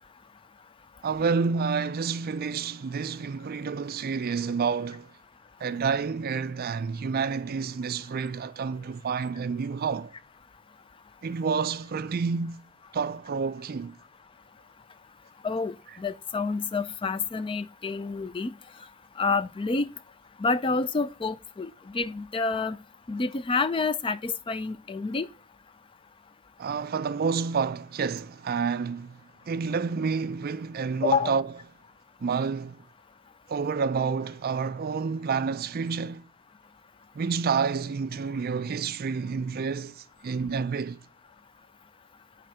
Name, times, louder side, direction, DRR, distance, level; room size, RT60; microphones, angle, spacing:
voice 1, 1.0-5.1 5.6-10.1 11.2-12.6 12.9-13.9 26.6-29.2 29.5-31.4 32.2-32.8 33.5-36.2 37.2-41.0, right 5 dB, 45° right, 0.4 m, -29 dB
voice 2, 15.4-18.5 19.2-19.9 20.4-22.8 23.1-25.3 31.0-31.3, left 4 dB, 25° left, 0.4 m, -28 dB
8.8 x 3.6 x 4.9 m
head